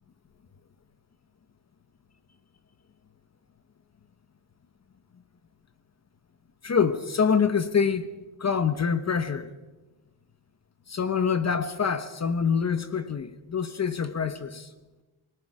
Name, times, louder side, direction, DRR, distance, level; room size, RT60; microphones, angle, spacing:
voice 1, 6.6-8.1 8.4-9.5 10.9-14.7, left 6 dB, 35° left, 1.2 m, -25 dB
29.5 x 21.0 x 5.0 m
cardioid pair, 125°, 47 cm